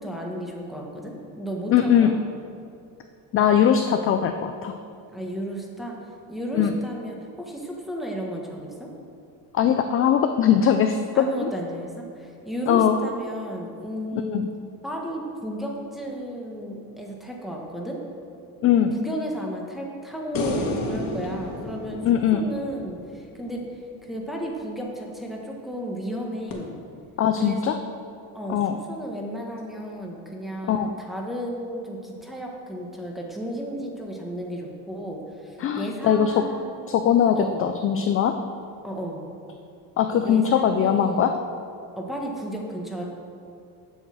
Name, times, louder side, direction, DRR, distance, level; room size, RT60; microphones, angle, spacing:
voice 1, 0.0-2.2 5.1-6.0 6.3-8.9 11.1-14.4 14.8-18.0 18.9-26.7 27.4-27.7 28.3-36.9 37.4-37.7 38.8-39.2 40.2-41.4 42.0-43.0, equal, ahead, -2 dB, 1.3 m, -33 dB
voice 2, 1.7-2.1 3.3-4.7 6.5-6.8 9.5-11.2 12.7-13.0 14.3-14.5 18.6-18.9 22.0-22.4 27.2-27.7 28.5-28.8 30.7-30.9 35.6-36.3 36.9-38.3 40.0-41.3, left 9 dB, 35° left, 6 dB, 0.4 m, -20 dB
sound 1, 20.3-23.7 26.5-26.6, left 2 dB, 50° left, 1.7 m, -31 dB
8.0 x 6.4 x 7.6 m, 2.6 s
cardioid pair, 145°, 42 cm